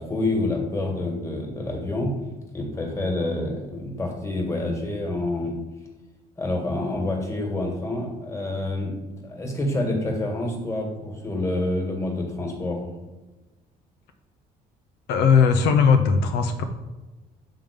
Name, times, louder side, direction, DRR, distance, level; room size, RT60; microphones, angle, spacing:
voice 1, 0.0-2.1 2.5-5.6 6.4-9.0 9.2-12.8, left 2 dB, 15° left, 1 dB, 1.8 m, -27 dB
voice 2, 15.1-16.6, left 6 dB, 80° left, 6 dB, 0.7 m, -18 dB
7.5 x 3.7 x 5.2 m, 1.2 s
cardioid pair, 110°, 17 cm